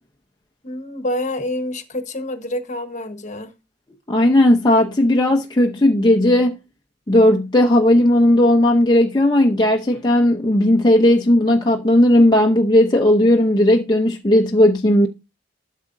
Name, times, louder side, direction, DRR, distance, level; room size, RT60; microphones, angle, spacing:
voice 1, 0.6-3.5, left 1 dB, 40° left, 1.3 m, -27 dB
voice 2, 4.1-6.6 7.1-15.1, left 1 dB, 25° left, 0.8 m, -15 dB
12.5 x 7.4 x 2.7 m
head